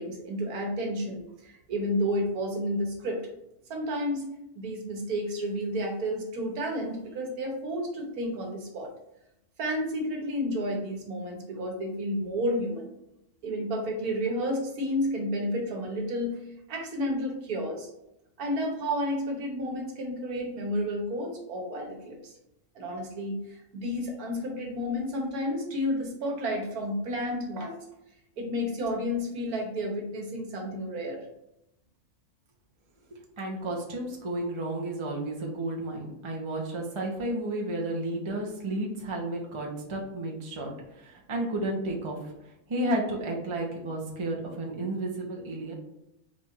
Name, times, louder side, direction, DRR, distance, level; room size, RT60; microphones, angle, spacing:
voice 1, 0.0-3.2 3.7-4.2 4.5-8.9 9.6-12.9 13.4-16.4 16.7-17.9 18.4-22.3 22.7-27.8 28.4-31.2, equal, 80° right, 1 dB, 1.6 m, -31 dB
voice 2, 33.4-42.2 42.7-45.8, right 1 dB, 25° right, -1 dB, 0.8 m, -32 dB
4.3 x 2.5 x 4.4 m, 0.84 s
omnidirectional pair, 1.5 m